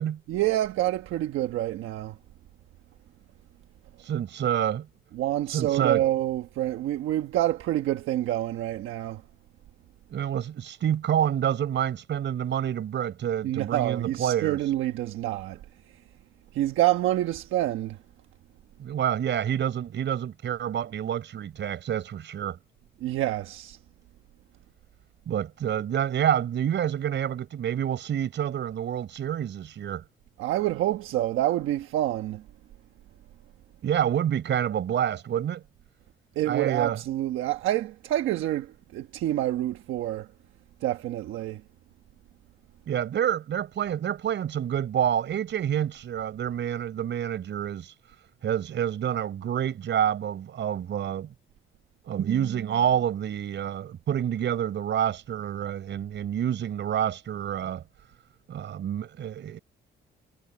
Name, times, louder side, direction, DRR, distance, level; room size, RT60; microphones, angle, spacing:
voice 1, 0.3-2.2 5.1-9.2 13.4-15.6 16.5-18.0 23.0-23.8 30.4-32.4 36.3-40.3 40.8-41.6, right 14 dB, 85° right, 1.2 m, -27 dB
voice 2, 4.0-4.9 5.5-6.0 10.1-14.6 18.8-22.6 25.3-30.0 33.8-35.6 36.5-37.0 42.9-47.9 48.4-51.3 52.1-57.8 58.5-59.6, right 9 dB, 65° right, 5.4 m, -28 dB
cardioid pair, 90°, 20 cm